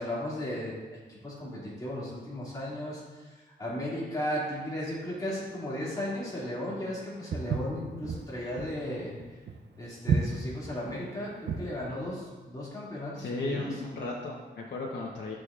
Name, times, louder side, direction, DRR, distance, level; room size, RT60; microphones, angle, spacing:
voice 1, 0.0-3.0 3.6-9.1 9.8-13.7, left 1 dB, 20° left, -7 dB, 2.2 m, -35 dB
Walk footsteps, 7.3-11.8, right 5 dB, 80° right, 0.6 m, -31 dB
voice 2, 13.2-15.4, left 2 dB, 90° left, -4 dB, 0.9 m, -35 dB
11.0 x 6.4 x 2.4 m, 1.3 s
wide cardioid pair, 155°, 18 cm